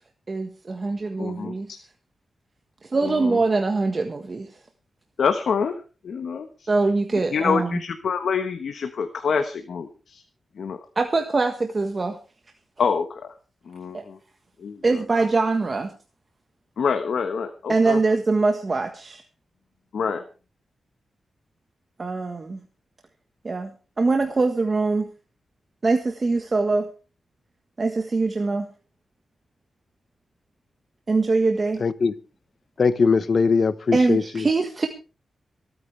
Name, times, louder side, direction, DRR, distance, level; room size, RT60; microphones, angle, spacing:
voice 1, 0.3-1.7 2.8-4.5 6.7-7.8 10.9-12.2 13.9-14.0 14.8-15.9 17.7-19.2 22.0-22.6 23.4-23.7 24.0-25.1 25.8-26.9 27.8-28.7 31.1-31.8 33.9-34.9, right 3 dB, 35° right, 1.4 m, -23 dB
voice 2, 1.2-1.8 3.0-3.4 5.2-6.7 7.1-10.2 10.6-10.8 12.8-13.3 13.6-14.2 14.6-15.0 16.8-18.0 19.9-20.2, left 6 dB, 70° left, 1.3 m, -27 dB
voice 3, 31.8-32.1 32.8-34.5, left 4 dB, 50° left, 1.0 m, -21 dB
26.5 x 9.4 x 3.4 m
wide cardioid pair, 115°, 0 cm